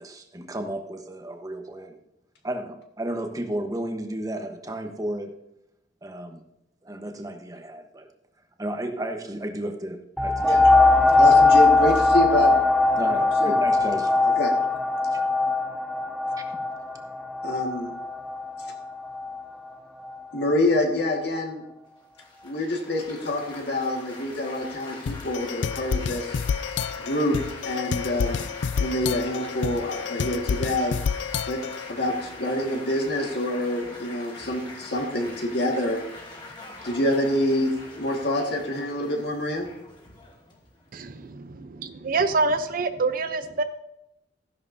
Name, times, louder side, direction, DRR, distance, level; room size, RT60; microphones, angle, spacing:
voice 1, 0.0-2.0 2.4-5.3 6.0-6.4 6.8-8.1 8.6-10.7 13.0-14.1 16.4-16.5, right 1 dB, 20° right, 5 dB, 1.1 m, -33 dB
sound 1, 10.2-19.4 20.1-20.2, left 3 dB, ahead, 0.4 m, -20 dB
voice 2, 11.1-12.6 13.4-13.6 14.4-14.6 17.4-17.9 20.3-21.6 22.4-26.4 27.0-27.4 27.6-28.4 28.8-31.0 31.5-31.6 31.9-36.0 36.8-39.7, left 1 dB, 65° left, 1 dB, 1.8 m, -26 dB
Laughter / Applause / Chatter, 22.2-41.3, left 2 dB, 30° left, 2.9 m, -43 dB
sound 2, 25.1-31.9, left 6 dB, 85° left, 0.4 m, -29 dB
voice 3, 40.9-43.6, right 3 dB, 50° right, 9 dB, 0.7 m, -26 dB
14.5 x 11.0 x 2.7 m, 0.85 s
head